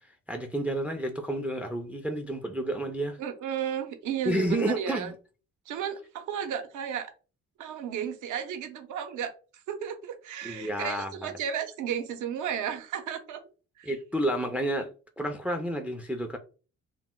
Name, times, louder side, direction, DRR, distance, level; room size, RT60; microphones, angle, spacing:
voice 1, 0.3-3.2 4.3-5.1 10.4-11.3 13.9-14.9 15.2-16.4, right 1 dB, 5° right, 0.3 m, -30 dB
voice 2, 3.2-5.1 5.7-7.1 7.6-9.3 9.7-13.4 13.8-13.9, right 8 dB, 80° right, 0.6 m, -33 dB
2.1 x 2.1 x 3.6 m
cardioid pair, 90°, 30 cm